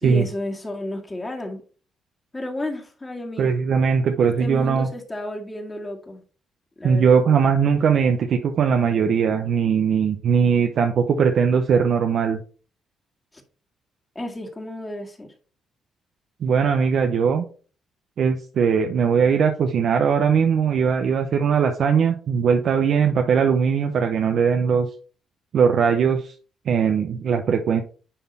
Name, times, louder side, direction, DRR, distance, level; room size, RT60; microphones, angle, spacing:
voice 1, 0.0-1.6 2.3-3.5 4.2-6.2 6.8-7.2 14.2-15.3, left 1 dB, 20° left, 2 dB, 2.0 m, -32 dB
voice 2, 3.4-4.9 6.8-12.4 16.4-17.4 18.2-24.9 25.5-26.3 26.7-27.8, right 6 dB, 65° right, 5 dB, 0.8 m, -20 dB
10.0 x 3.6 x 4.2 m, 0.39 s
cardioid pair, 90°, 0 cm